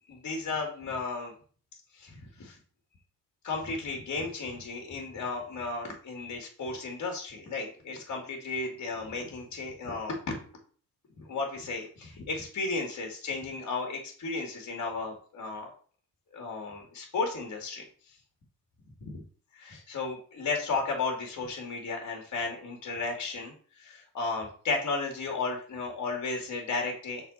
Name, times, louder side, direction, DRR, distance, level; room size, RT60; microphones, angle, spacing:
voice 1, 0.1-1.3 1.9-2.6 3.4-10.3 11.2-15.7 16.3-17.8 19.0-19.2 19.5-23.5 23.8-27.3, left 3 dB, 45° left, 2 dB, 2.3 m, -34 dB
6.7 x 4.2 x 4.1 m, 0.43 s
cardioid pair, 90°, 38 cm